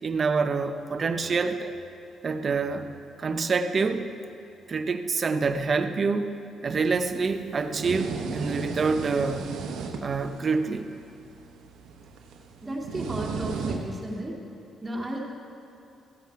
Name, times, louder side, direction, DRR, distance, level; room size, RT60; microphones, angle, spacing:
voice 1, 0.0-1.7 2.2-2.9 3.2-4.1 4.7-6.4 6.6-9.5 10.0-10.9, right 4 dB, 40° right, 8 dB, 0.7 m, -26 dB
sound 1, 6.7-14.2, right 4 dB, 85° right, 1.0 m, -36 dB
voice 2, 12.6-14.4 14.8-15.2, right 1 dB, 20° right, -2 dB, 2.4 m, -34 dB
14.5 x 8.3 x 4.7 m, 2.8 s
cardioid pair, 90°, 0 cm